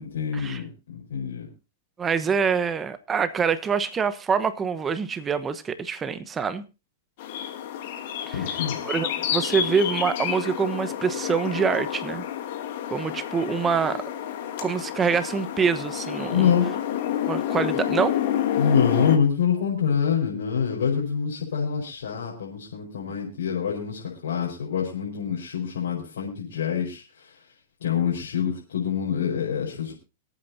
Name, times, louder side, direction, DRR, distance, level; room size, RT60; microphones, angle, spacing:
voice 1, 0.0-1.5 8.3-8.8 16.3-16.7 18.6-27.4 27.8-29.9, left 7 dB, 90° left, -4 dB, 5.0 m, -26 dB
voice 2, 2.0-6.6 8.3-8.4 8.8-12.2 12.9-14.0 14.6-16.5 17.3-18.2, right 6 dB, 20° right, 13 dB, 1.1 m, -25 dB
sound 1, 7.2-19.2, left 10 dB, 60° left, 2.6 m, -29 dB
26.5 x 8.9 x 2.8 m, 0.29 s
hypercardioid pair, 135°, 0 cm